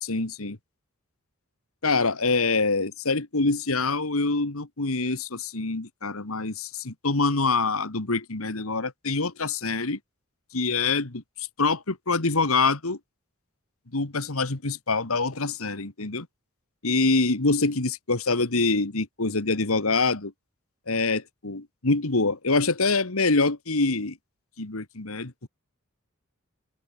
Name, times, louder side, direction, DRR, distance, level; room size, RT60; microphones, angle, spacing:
voice 1, 0.0-0.6 1.8-10.0 10.5-11.2 11.6-13.0 13.9-16.3 16.8-20.3 20.9-24.2 24.6-25.3, left 3 dB, 75° left, 2.0 m, -25 dB
open air
head